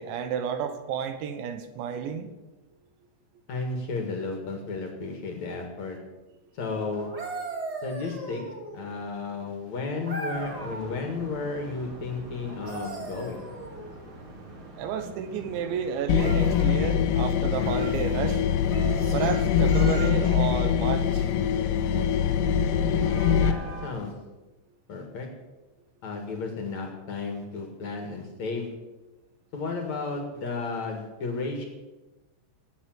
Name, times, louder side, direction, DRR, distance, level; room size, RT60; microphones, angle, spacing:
voice 1, 0.0-2.3 14.8-18.4 19.1-21.3, right 7 dB, 75° right, 9 dB, 3.3 m, -31 dB
voice 2, 3.5-6.0 6.5-7.1 7.8-8.4 8.7-13.5 23.3-24.1 24.9-25.3 26.0-28.7 29.5-31.6, left 3 dB, 50° left, 3 dB, 2.3 m, -33 dB
sound 1, 6.9-8.9 10.1-11.0 12.4-14.0 16.1-16.7 17.6-18.0 18.7-20.5 22.3-22.5, right 2 dB, 25° right, 2.8 m, -38 dB
sound 2, 10.3-23.9, right 1 dB, 40° right, 3.6 m, -44 dB
sound 3, 16.1-23.5, left 8 dB, 80° left, 2.6 m, -23 dB
18.0 x 8.5 x 7.8 m, 1.1 s
omnidirectional pair, 5.7 m